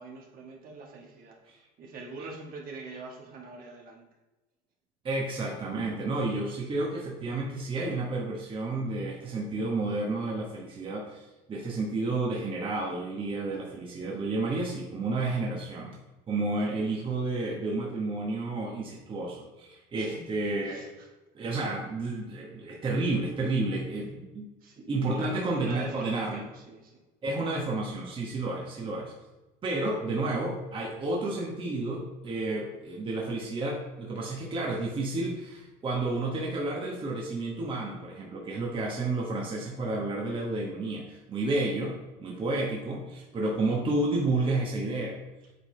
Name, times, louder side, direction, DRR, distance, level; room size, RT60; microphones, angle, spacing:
voice 1, 0.0-4.0 16.7-16.8 19.9-20.2 20.7-21.1 24.6-27.0 28.4-28.6, right 3 dB, 50° right, 0 dB, 1.6 m, -44 dB
voice 2, 5.0-16.0 16.3-20.9 21.3-24.5 24.9-26.4 27.2-29.1 29.6-45.2, right 2 dB, 30° right, -1 dB, 1.2 m, -31 dB
8.0 x 3.9 x 3.3 m, 1.1 s
supercardioid pair, 105°, 19 cm